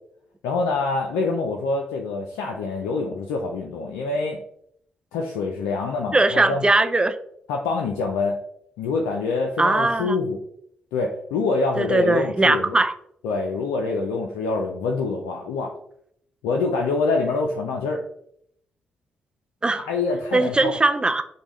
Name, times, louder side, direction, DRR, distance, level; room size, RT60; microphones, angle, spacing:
voice 1, 0.4-4.4 5.1-6.6 7.5-8.4 8.8-10.4 10.9-12.8 13.2-15.7 16.4-18.0 19.8-20.7, left 3 dB, 85° left, 2 dB, 0.4 m, -25 dB
voice 2, 6.1-7.2 9.6-10.2 11.8-12.9 19.6-19.9 20.3-21.2, right 2 dB, 20° right, 10 dB, 0.4 m, -20 dB
5.2 x 2.2 x 3.0 m, 0.70 s
hypercardioid pair, 45°, 4 cm